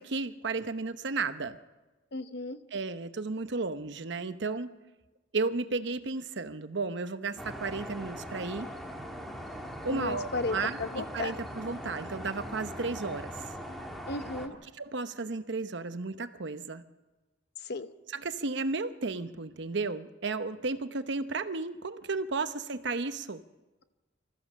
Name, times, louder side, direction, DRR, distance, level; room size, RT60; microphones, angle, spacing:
voice 1, 0.0-1.6 2.7-4.7 5.3-8.7 9.8-13.4 14.6-16.8 18.1-23.4, right 3 dB, 65° right, 11 dB, 0.9 m, -33 dB
voice 2, 2.1-2.6 9.9-11.3 14.1-14.5 17.7-17.9, left 2 dB, 60° left, 11 dB, 1.0 m, -34 dB
sound 1, 7.4-14.5, equal, ahead, 1.9 m, -41 dB
25.0 x 14.5 x 7.4 m, 1.2 s
head